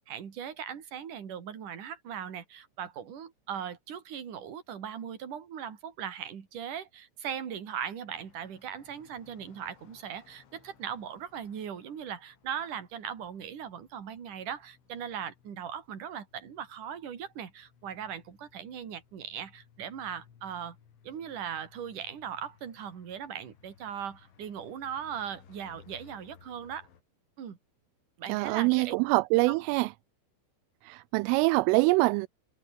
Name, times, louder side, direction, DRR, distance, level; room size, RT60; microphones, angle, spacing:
voice 1, 0.0-20.8 21.0-26.9 27.4-27.6 28.2-29.0 29.5-29.6, right 8 dB, 45° right, 4.1 m, -39 dB
sound 1, 8.1-27.0, left 8 dB, 75° left, 6.4 m, -61 dB
voice 2, 28.3-29.9 30.9-32.3, right 24 dB, 85° right, 3.1 m, -24 dB
omnidirectional pair, 5.7 m